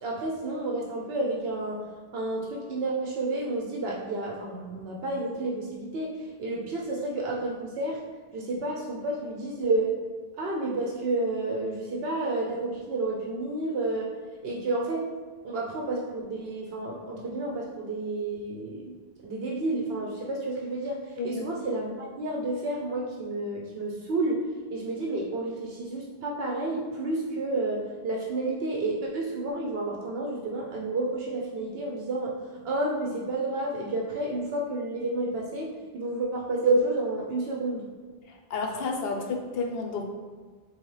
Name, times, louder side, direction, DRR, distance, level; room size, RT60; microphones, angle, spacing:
voice 1, 0.0-1.8 2.1-8.0 8.3-9.9 10.4-14.1 14.4-15.0 15.4-18.9 19.2-21.0 21.2-24.4 24.7-32.3 32.6-35.7 35.9-37.8, right 2 dB, 75° right, -2 dB, 0.8 m, -30 dB
voice 2, 38.5-40.0, left 4 dB, 70° left, 3 dB, 0.8 m, -31 dB
4.2 x 3.1 x 3.1 m, 1.5 s
omnidirectional pair, 1.1 m